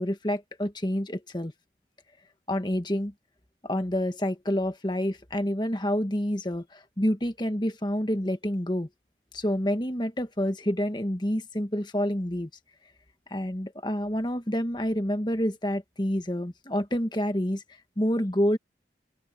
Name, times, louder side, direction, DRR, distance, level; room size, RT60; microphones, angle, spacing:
voice 1, 0.0-1.5 2.5-3.1 3.6-8.9 9.3-12.5 13.3-17.6 18.0-18.6, equal, 25° left, 1.5 m, -28 dB
open air
head